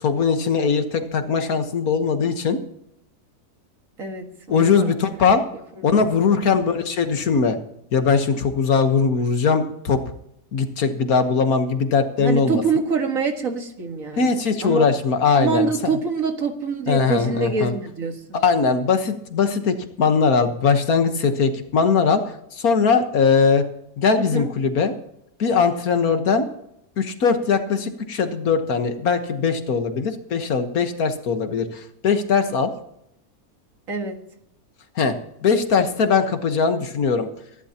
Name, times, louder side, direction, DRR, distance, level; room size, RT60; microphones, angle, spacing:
voice 1, 0.0-2.6 4.5-5.4 5.8-7.6 7.9-10.0 10.5-12.6 14.2-15.9 16.9-17.7 18.3-22.2 22.5-23.6 24.0-25.0 25.4-26.5 27.0-32.7 35.0-35.1 35.4-37.3, left 5 dB, 70° left, 7 dB, 1.8 m, -20 dB
voice 2, 4.0-4.9 5.3-5.4 5.8-6.5 12.2-14.9 15.3-18.4 24.2-24.5 33.9-34.2, right 5 dB, 60° right, 4 dB, 2.2 m, -26 dB
24.0 x 11.5 x 2.9 m, 0.76 s
omnidirectional pair, 1.6 m